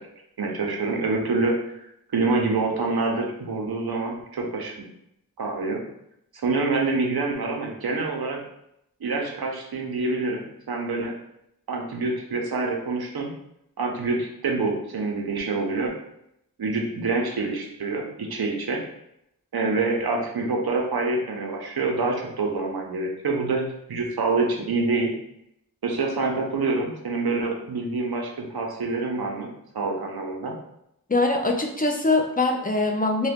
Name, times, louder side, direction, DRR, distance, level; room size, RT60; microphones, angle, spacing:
voice 1, 0.4-1.8 2.1-4.8 5.4-5.8 6.4-8.4 9.0-11.1 11.7-13.3 13.8-15.9 16.6-18.8 19.5-25.1 25.8-29.5 29.7-30.5, right 3 dB, 90° right, 0 dB, 0.6 m, -26 dB
voice 2, 31.1-33.3, left 2 dB, 25° left, 3 dB, 0.4 m, -22 dB
2.7 x 2.2 x 3.5 m, 0.79 s
wide cardioid pair, 55°, 37 cm